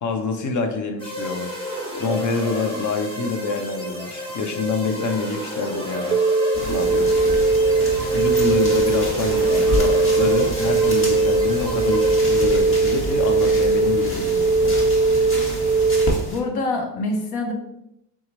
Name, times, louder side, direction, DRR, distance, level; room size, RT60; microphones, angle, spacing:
voice 1, 0.0-1.5 2.0-6.2 6.6-7.1 8.1-14.8, left 4 dB, 45° left, 5 dB, 0.9 m, -26 dB
sound 1, 1.0-12.8, equal, 15° left, 1.4 m, -32 dB
sound 2, 6.1-16.1, right 3 dB, 20° right, 0.4 m, -19 dB
sound 3, 6.5-16.4, left 1 dB, 30° left, 1.4 m, -30 dB
voice 2, 16.3-17.5, left 2 dB, 70° left, 3 dB, 1.0 m, -25 dB
3.7 x 2.9 x 4.0 m, 0.82 s
supercardioid pair, 65°, 40 cm